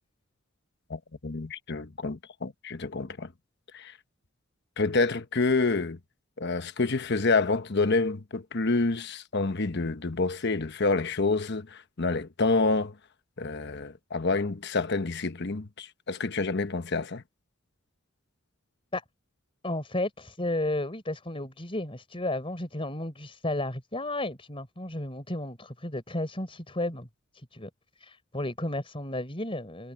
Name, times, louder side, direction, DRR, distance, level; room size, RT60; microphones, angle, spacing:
voice 1, 0.9-3.3 3.7-3.9 4.8-6.0 6.4-12.9 13.4-17.2, left 3 dB, 55° left, 1.1 m, -28 dB
voice 2, 19.6-27.1 27.5-27.7 28.0-29.9, left 1 dB, 25° left, 4.2 m, -33 dB
head